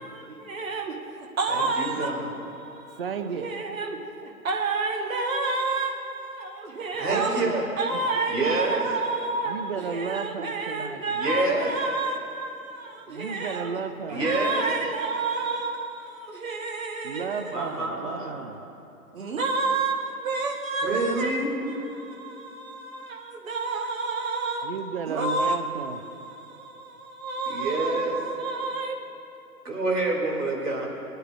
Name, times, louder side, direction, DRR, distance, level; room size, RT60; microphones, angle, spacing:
voice 1, 0.1-3.0 3.4-7.4 7.8-13.8 14.1-17.5 19.1-24.7 25.1-25.6 25.9-29.0, right 3 dB, 60° right, 2 dB, 1.2 m, -30 dB
voice 2, 1.5-2.3 7.0-7.7 8.3-8.8 11.1-11.7 14.1-14.6 17.5-18.4 20.8-21.6 27.5-28.2 29.6-30.9, right 2 dB, 80° right, -2 dB, 2.5 m, -27 dB
voice 3, 2.9-3.5 7.1-7.6 7.9-8.2 9.5-11.0 13.1-14.2 17.0-18.6 24.6-26.0, right 6 dB, 40° right, 8 dB, 0.5 m, -33 dB
24.0 x 9.0 x 2.4 m, 2.9 s
figure-of-eight pair, 140°, 47 cm